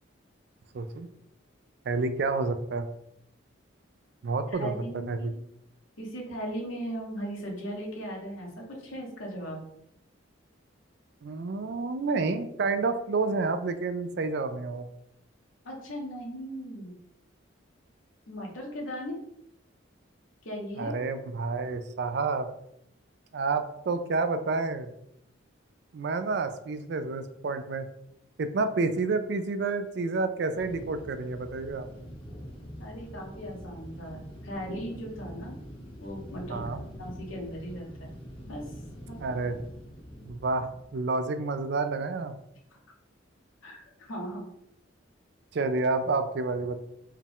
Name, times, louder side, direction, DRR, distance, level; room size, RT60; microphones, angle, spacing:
voice 1, 0.7-1.1 1.9-2.9 4.2-4.7 5.1-5.3 11.2-14.9 20.8-22.5 23.3-24.9 25.9-27.9 28.4-31.9 36.5-36.8 39.2-39.6 40.2-42.3 45.5-46.8, right 3 dB, 55° right, 9 dB, 0.4 m, -29 dB
voice 2, 4.5-5.4 6.0-9.6 15.6-16.9 18.3-19.2 20.4-20.9 32.8-35.6 36.0-36.6 37.0-38.1 38.5-38.7 39.1-39.2 43.6-44.4, equal, 90° left, -1 dB, 1.2 m, -38 dB
sound 1, 30.5-40.9, equal, 25° left, 0.7 m, -44 dB
4.5 x 2.4 x 3.5 m, 0.76 s
head